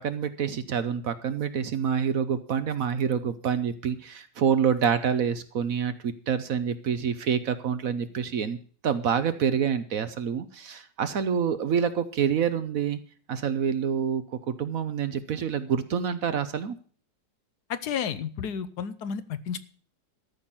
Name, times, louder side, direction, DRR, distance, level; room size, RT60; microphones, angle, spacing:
voice 1, 0.0-8.6 8.8-13.0 13.3-16.8, right 7 dB, 60° right, 12 dB, 1.1 m, -27 dB
voice 2, 17.7-19.6, left 7 dB, 65° left, 14 dB, 1.2 m, -32 dB
13.5 x 5.8 x 8.6 m, 0.44 s
omnidirectional pair, 1.9 m